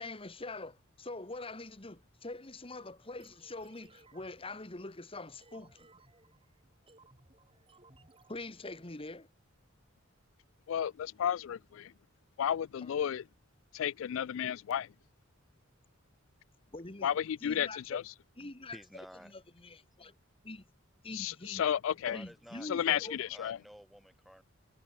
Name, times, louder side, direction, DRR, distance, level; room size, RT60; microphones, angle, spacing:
voice 1, 0.0-5.8 8.3-9.3 12.8-12.9 16.7-17.1 17.4-18.0 18.4-18.8 19.2-20.1 20.4-20.7 21.0-21.6 22.1-23.2, left 2 dB, 25° left, 1.6 m, -44 dB
sound 1, 3.2-8.9, right 2 dB, 25° right, 4.4 m, -63 dB
voice 2, 10.7-11.9 12.4-13.2 13.7-14.9 17.0-18.0 21.1-22.2 22.6-23.6, left 9 dB, 70° left, 0.3 m, -32 dB
voice 3, 18.7-19.3 21.1-21.2 21.9-24.4, equal, ahead, 1.7 m, -52 dB
head